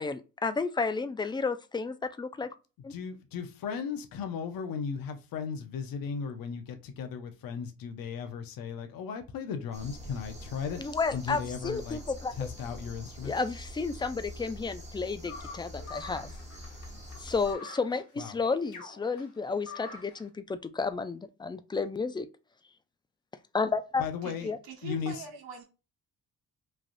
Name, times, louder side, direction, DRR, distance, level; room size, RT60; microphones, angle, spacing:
voice 1, 0.0-2.5 2.8-2.9 10.8-12.5 13.2-16.3 17.2-22.3 23.5-24.0 24.4-24.6, left 4 dB, 15° left, 0.3 m, -32 dB
voice 2, 2.9-10.8 11.1-12.0 12.4-13.3 18.2-18.4 24.0-24.5 24.8-25.1, left 6 dB, 70° left, 0.7 m, -36 dB
sound 1, 9.7-17.6, left 1 dB, 20° right, 1.2 m, -45 dB
sound 2, 15.2-20.3, left 4 dB, 55° left, 1.1 m, -46 dB
voice 3, 24.2-25.6, right 5 dB, 75° right, 1.0 m, -44 dB
3.3 x 2.4 x 2.5 m
supercardioid pair, 60°, 36 cm